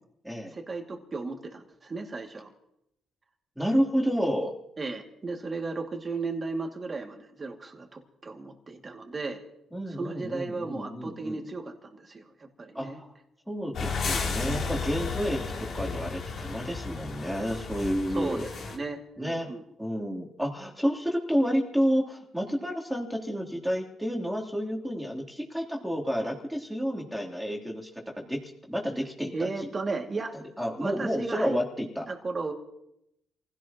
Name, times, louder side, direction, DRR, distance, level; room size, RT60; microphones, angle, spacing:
voice 1, 0.5-2.5 4.8-9.4 9.9-13.0 14.4-14.7 18.1-19.6 29.3-30.3 30.8-31.6 32.1-32.5, right 3 dB, 30° right, 2 dB, 2.4 m, -35 dB
voice 2, 3.6-4.5 9.7-11.4 12.7-13.1 13.5-18.5 19.2-19.5 19.8-27.9 28.1-29.5 30.6-32.1, equal, ahead, -2 dB, 3.4 m, -30 dB
sound 1, 13.7-18.8, left 4 dB, 65° left, 3.0 m, -33 dB
27.5 x 16.5 x 3.0 m, 0.80 s
cardioid pair, 90°, 0 cm